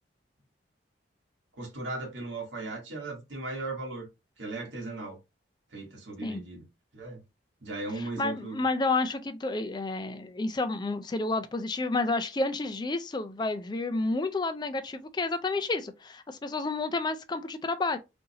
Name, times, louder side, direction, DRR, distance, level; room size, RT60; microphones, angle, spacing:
voice 1, 1.5-4.1 4.4-5.2 5.7-6.6 6.9-7.2 7.6-8.6, right 2 dB, 80° right, 1.4 m, -37 dB
voice 2, 8.0-18.0, left 3 dB, 25° left, 0.4 m, -30 dB
3.9 x 2.6 x 2.8 m
head